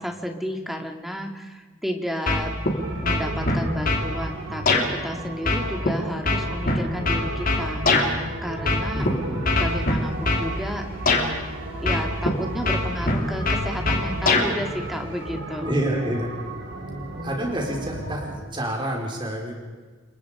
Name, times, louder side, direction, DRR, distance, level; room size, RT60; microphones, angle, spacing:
voice 1, 0.0-2.6 3.0-9.0 9.5-10.8 11.8-15.7, equal, ahead, 3 dB, 2.3 m, -32 dB
sound 1, 2.3-2.8 3.0-4.1 4.7-4.8 5.5-8.1 8.6-9.1 9.4-10.5 11.1-11.2 11.9-12.3 12.6-14.5, left 2 dB, 40° left, 3.3 m, -22 dB
sound 2, 2.7-18.4, right 1 dB, 55° right, 4.4 m, -34 dB
voice 2, 8.9-9.5 15.6-16.3 17.2-19.5, right 1 dB, 25° right, 0 dB, 4.6 m, -28 dB
sound 3, 9.6-15.6, left 1 dB, 40° right, 7.8 m, -46 dB
30.0 x 22.5 x 5.1 m, 1.4 s
head